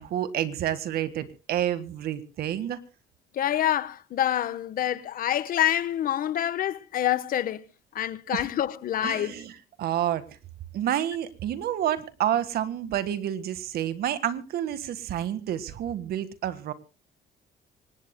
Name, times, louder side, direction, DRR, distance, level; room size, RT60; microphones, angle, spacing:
voice 1, 0.0-2.8 8.3-8.4 9.0-10.2 10.7-16.7, right 11 dB, 65° right, 1.6 m, -29 dB
voice 2, 3.3-7.6 7.9-9.4, left 11 dB, 55° left, 1.1 m, -27 dB
25.5 x 19.5 x 2.2 m
cardioid pair, 110°, 17 cm